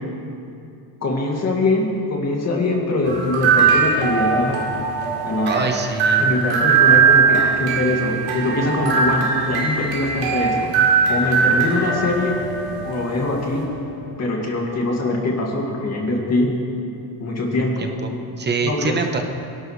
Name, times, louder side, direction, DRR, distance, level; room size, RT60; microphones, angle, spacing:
voice 1, 1.0-4.6 5.2-5.7 6.2-10.7 11.1-12.4 12.8-13.6 14.2-16.5 17.2-18.2 18.6-19.0, left 2 dB, 35° left, -1 dB, 2.3 m, -22 dB
sound 1, 3.0-13.8, right 6 dB, 75° right, 3.0 m, -20 dB
voice 2, 5.4-6.3 17.8-18.1 18.4-19.2, right 4 dB, 25° right, 4 dB, 1.1 m, -24 dB
23.0 x 11.5 x 3.3 m, 2.7 s
cardioid pair, 145°, 45 cm